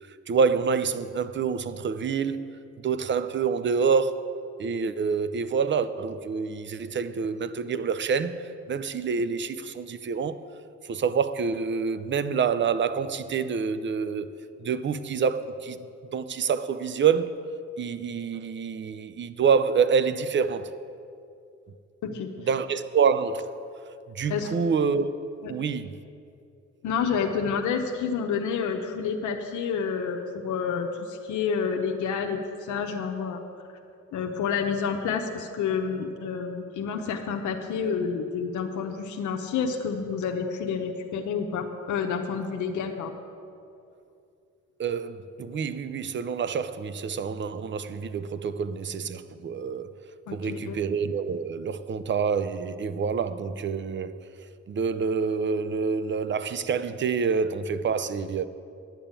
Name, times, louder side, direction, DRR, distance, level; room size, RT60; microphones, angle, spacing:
voice 1, 0.3-2.4 2.8-4.3 4.6-10.4 10.9-14.3 14.6-15.8 16.1-17.3 17.8-20.7 22.5-23.5 24.1-25.1 25.5-26.0 44.8-49.9 50.3-54.2 54.7-58.5, right 6 dB, 40° right, 0.6 m, -27 dB
voice 2, 26.8-33.4 34.1-43.1 50.3-50.8, left 6 dB, 75° left, 0.9 m, -29 dB
10.5 x 7.0 x 8.8 m
cardioid pair, 90°, 30 cm